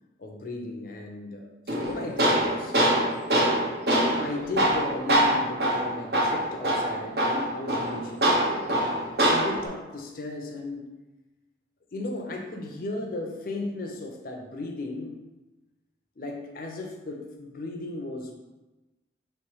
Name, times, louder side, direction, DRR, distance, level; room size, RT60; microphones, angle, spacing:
voice 1, 0.2-2.8 4.1-8.7 9.2-10.9 11.9-15.2 16.2-18.3, left 2 dB, 55° left, 2 dB, 0.5 m, -35 dB
Tools, 1.7-9.7, right 1 dB, 60° right, 0.9 m, -24 dB
3.1 x 3.1 x 4.7 m, 1.1 s
head